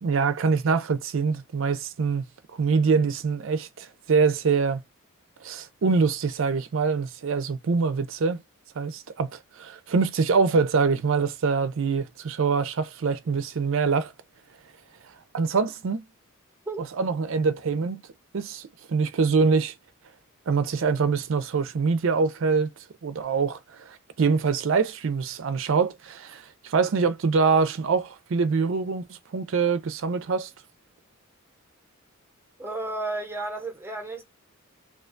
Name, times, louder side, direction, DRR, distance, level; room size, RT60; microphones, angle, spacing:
voice 1, 0.0-2.2 2.6-4.8 5.4-8.4 8.8-14.1 15.3-16.0 17.0-18.0 18.3-19.7 20.5-22.7 23.0-30.5, right 5 dB, 60° right, 0.4 m, -24 dB
voice 2, 32.6-34.2, right 2 dB, 10° right, 0.8 m, -32 dB
2.4 x 2.2 x 2.5 m
head